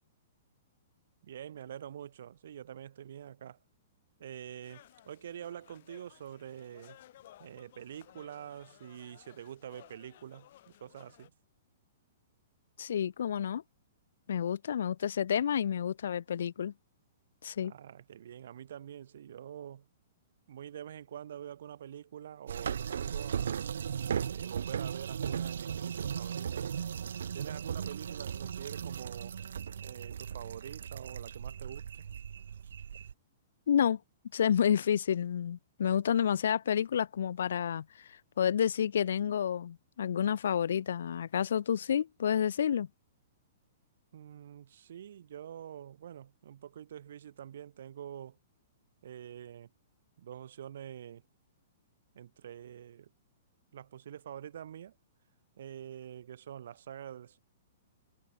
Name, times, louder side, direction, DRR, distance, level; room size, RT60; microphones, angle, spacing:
voice 1, 1.2-3.6 4.2-7.0 7.4-11.3 17.6-19.9 20.5-23.7 24.3-26.9 27.3-29.4 29.8-32.1 44.1-48.4 49.0-49.7 50.2-51.2 52.1-53.1 53.7-55.0 55.6-57.4, right 10 dB, 65° right, 7.7 m, -46 dB
sound 1, 4.6-11.3, left 13 dB, 50° left, 6.5 m, -58 dB
voice 2, 12.8-13.6 14.3-16.7 17.4-17.7 33.7-34.0 34.3-42.9, left 8 dB, 75° left, 2.4 m, -30 dB
sound 2, 22.5-33.1, right 8 dB, 85° right, 4.8 m, -37 dB
hypercardioid pair, 170°, 0 cm